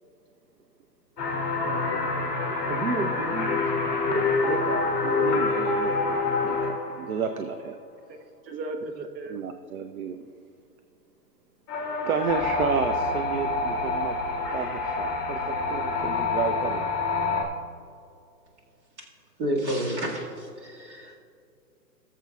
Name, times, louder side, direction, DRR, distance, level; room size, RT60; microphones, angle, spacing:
sound 1, 1.2-7.4 11.7-17.4, left 3 dB, 15° left, 1.2 m, -27 dB
voice 1, 1.6-2.1 2.7-3.9 8.4-9.4, right 3 dB, 90° right, 5 dB, 1.1 m, -34 dB
voice 2, 4.4-7.8 9.3-10.2 12.0-14.2 14.5-16.9, right 6 dB, 60° right, 8 dB, 0.6 m, -32 dB
voice 3, 19.4-21.1, equal, 45° right, -2 dB, 2.0 m, -30 dB
18.0 x 7.1 x 2.3 m, 2.4 s
hypercardioid pair, 175°, 48 cm